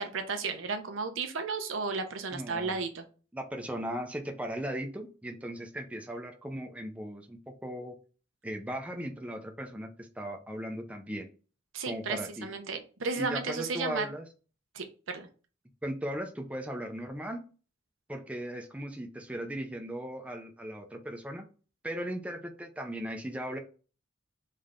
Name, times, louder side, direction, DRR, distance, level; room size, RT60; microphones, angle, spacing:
voice 1, 0.0-3.0 11.7-14.0 14.7-15.3, right 4 dB, 90° right, 6 dB, 0.8 m, -34 dB
voice 2, 2.3-2.8 3.3-8.0 8.4-11.3 11.9-12.5 13.2-14.3 15.8-17.4 18.1-21.5 21.8-23.6, equal, 5° right, 4 dB, 0.5 m, -37 dB
3.6 x 3.3 x 3.6 m, 0.36 s
head